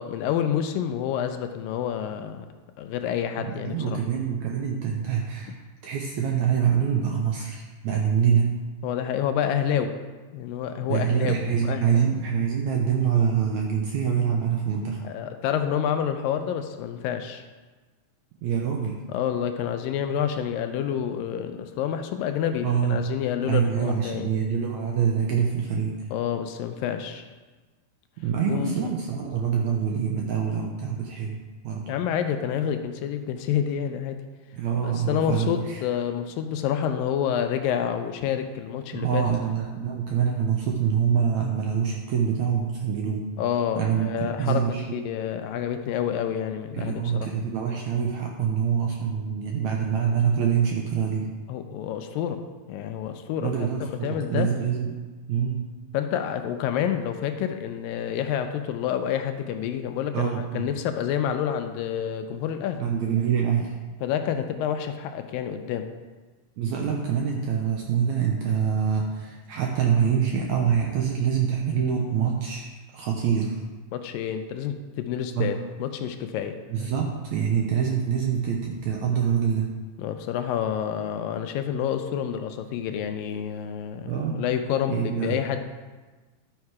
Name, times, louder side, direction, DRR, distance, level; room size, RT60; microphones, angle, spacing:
voice 1, 0.0-2.5 2.8-4.0 8.8-9.9 10.3-11.4 11.6-11.8 15.0-17.4 19.1-24.3 26.1-27.2 28.5-28.9 31.9-34.2 34.8-39.3 43.4-47.3 51.5-52.4 52.7-54.5 55.9-62.8 64.0-65.9 73.9-76.6 80.0-85.6, left 9 dB, 80° left, 7 dB, 2.2 m, -28 dB
voice 2, 3.4-5.6 5.8-8.5 10.9-15.0 18.4-19.0 22.6-23.0 23.4-26.0 28.2-31.8 34.5-35.8 38.9-43.3 43.8-45.0 46.7-51.3 53.4-55.0 55.3-55.7 60.1-60.7 62.8-63.8 66.6-72.7 72.9-73.6 75.3-75.5 76.7-79.7 84.0-84.5 84.9-85.4, right 7 dB, 75° right, 0 dB, 1.7 m, -25 dB
11.5 x 6.5 x 4.7 m, 1.3 s
omnidirectional pair, 4.2 m